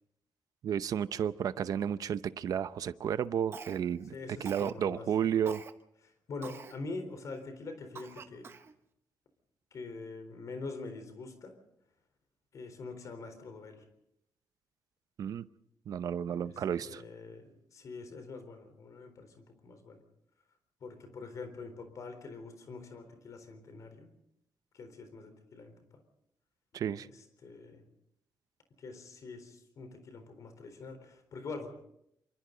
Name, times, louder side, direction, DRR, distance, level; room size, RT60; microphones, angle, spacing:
voice 1, 0.6-4.1 4.4-5.6 15.2-15.4 15.9-17.0 26.7-27.1, right 8 dB, 55° right, 14 dB, 0.7 m, -32 dB
Cough, 3.5-4.0 4.4-4.8 5.4-5.7 6.4-6.8 7.3-7.4 7.9-8.7, right 5 dB, 30° right, 1.0 m, -46 dB
voice 2, 4.1-5.0 6.0-8.5 9.7-11.5 12.5-13.8 16.3-20.0 20.8-24.1 24.7-26.0 26.7-27.8 28.8-31.7, left 3 dB, 45° left, 8 dB, 4.0 m, -45 dB
27.5 x 25.0 x 4.0 m, 0.79 s
wide cardioid pair, 175°, 8 cm